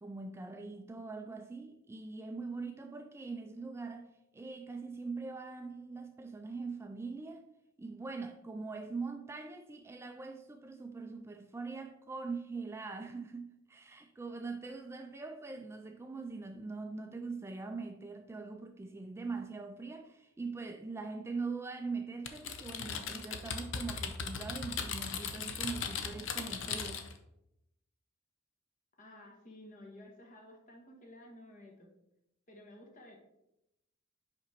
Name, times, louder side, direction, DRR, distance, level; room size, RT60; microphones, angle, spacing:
voice 1, 0.0-4.1 4.3-7.4 7.8-27.1, right 4 dB, 15° right, 0.3 m, -42 dB
Typing, 22.3-27.2, left 6 dB, 70° left, 0.7 m, -38 dB
voice 2, 29.0-31.9 32.5-33.2, left 1 dB, 40° left, 1.4 m, -53 dB
5.5 x 5.2 x 4.2 m
head